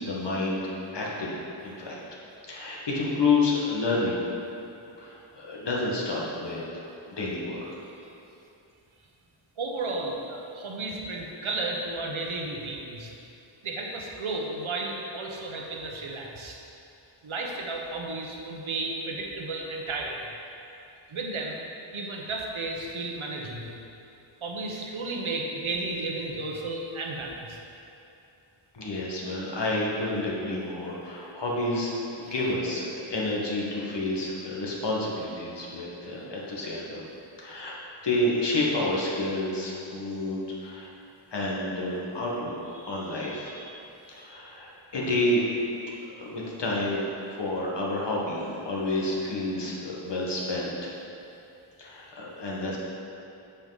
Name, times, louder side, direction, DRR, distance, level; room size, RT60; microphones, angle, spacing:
voice 1, 0.0-2.0 2.5-4.2 5.0-7.7 28.7-37.0 37.4-37.7 38.0-40.9 41.3-45.6 46.2-50.9 51.8-52.8, left 2 dB, 55° left, -4 dB, 1.6 m, -29 dB
voice 2, 9.6-13.1 13.6-16.6 17.2-20.3 21.1-21.6 21.9-23.8 24.4-27.6 32.2-32.3, right 2 dB, 75° right, 0 dB, 1.1 m, -33 dB
7.9 x 6.8 x 4.0 m, 2.8 s
wide cardioid pair, 110°, 49 cm